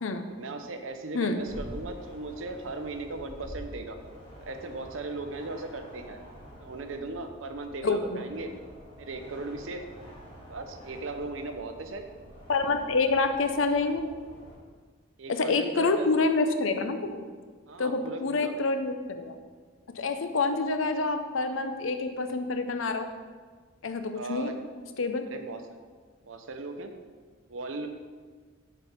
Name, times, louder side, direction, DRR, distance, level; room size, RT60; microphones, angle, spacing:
voice 1, 0.3-4.0 4.4-6.2 6.6-8.5 9.0-9.8 10.5-12.1 15.2-16.2 17.7-18.5 24.1-24.6 25.3-25.8 26.2-26.9 27.5-27.9, right 2 dB, 80° right, 7 dB, 0.7 m, -37 dB
sound 1, 1.4-14.6, equal, 25° left, 2.1 m, -47 dB
voice 2, 7.8-8.2 12.5-14.0 15.3-17.2 17.8-19.4 19.9-23.1 23.8-24.5 25.0-25.3, left 3 dB, 80° left, 8 dB, 0.6 m, -27 dB
6.9 x 4.4 x 5.7 m, 1.5 s
head